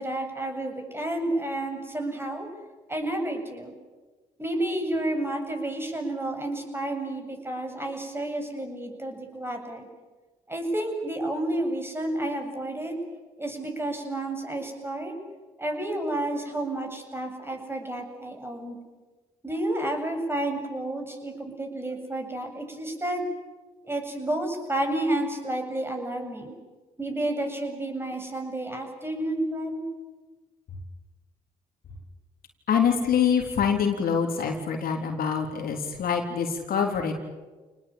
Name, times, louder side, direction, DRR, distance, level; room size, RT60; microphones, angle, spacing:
voice 1, 0.0-2.5 2.9-3.7 4.4-9.9 10.5-13.0 13.4-15.1 15.6-18.8 19.4-23.2 23.8-26.5 27.0-29.8, right 1 dB, 15° right, 4 dB, 7.9 m, -30 dB
voice 2, 32.7-37.1, left 7 dB, 65° left, 3 dB, 3.8 m, -25 dB
28.5 x 19.5 x 8.9 m, 1.3 s
supercardioid pair, 50°, 16 cm